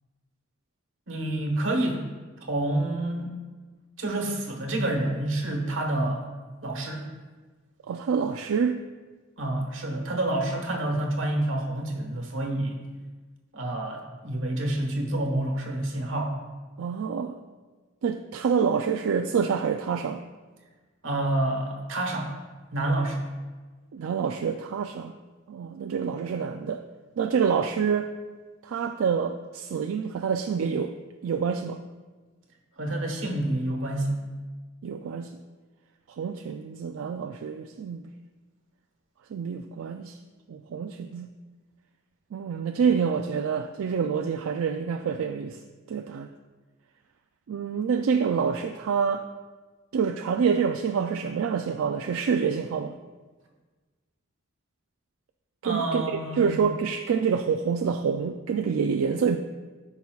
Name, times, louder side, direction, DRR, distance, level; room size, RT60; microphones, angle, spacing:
voice 1, 1.1-2.0 2.5-3.3 4.0-6.3 6.6-7.0 9.4-12.8 13.5-16.4 21.0-22.3 22.7-23.3 32.8-34.2 55.6-56.6, right 1 dB, 70° right, 1 dB, 1.4 m, -28 dB
voice 2, 7.9-8.8 16.8-17.4 18.0-20.2 23.9-25.1 25.5-26.8 27.2-28.1 28.6-31.0 31.2-31.8 34.8-35.3 36.2-38.1 39.3-40.2 40.5-41.3 42.3-45.6 45.9-46.3 47.5-49.2 49.9-53.0 55.6-59.4, right 6 dB, 90° right, 5 dB, 0.4 m, -27 dB
13.5 x 5.5 x 2.3 m, 1.3 s
head